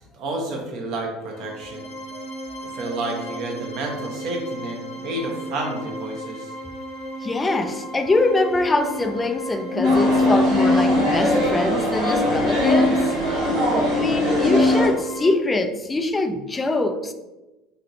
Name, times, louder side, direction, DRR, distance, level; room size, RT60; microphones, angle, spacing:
voice 1, 0.1-1.9 2.7-6.5 13.8-14.2, right 2 dB, 60° right, 0 dB, 0.8 m, -30 dB
sound 1, 1.2-15.3, right 1 dB, 80° left, 1.1 m, -35 dB
voice 2, 7.2-17.1, left 2 dB, 20° left, 7 dB, 0.4 m, -24 dB
sound 2, 9.8-14.8, left 2 dB, 60° left, 1.0 m, -22 dB
sound 3, 9.8-14.9, equal, 80° right, 1.4 m, -24 dB
3.3 x 2.7 x 2.7 m, 1.1 s
hypercardioid pair, 70°, 0 cm